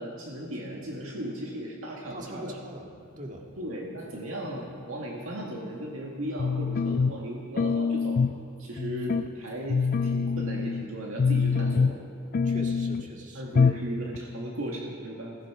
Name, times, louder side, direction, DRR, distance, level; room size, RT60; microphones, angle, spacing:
voice 1, 0.0-2.5 3.6-8.2 8.6-12.0 13.3-15.4, right 1 dB, 75° right, -2 dB, 1.9 m, -36 dB
voice 2, 2.1-2.9 3.2-3.5 12.4-13.4, right 1 dB, 35° right, 1 dB, 2.0 m, -41 dB
sound 1, 6.4-7.2 7.6-8.4 8.8-9.3 9.7-10.9 11.2-12.1 12.3-13.1 13.5-13.9 14.1-14.2, left 5 dB, 40° left, 0.3 m, -25 dB
17.0 x 16.0 x 4.9 m, 2.3 s
head